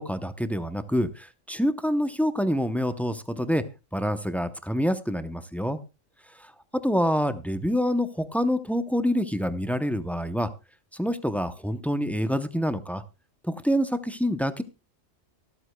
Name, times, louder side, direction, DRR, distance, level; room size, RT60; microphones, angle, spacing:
voice 1, 0.0-3.6 3.9-5.8 6.4-6.5 6.8-10.5 10.9-13.0 13.4-14.6, equal, ahead, 10 dB, 0.4 m, -26 dB
24.0 x 8.1 x 2.2 m, 0.27 s
omnidirectional pair, 1.3 m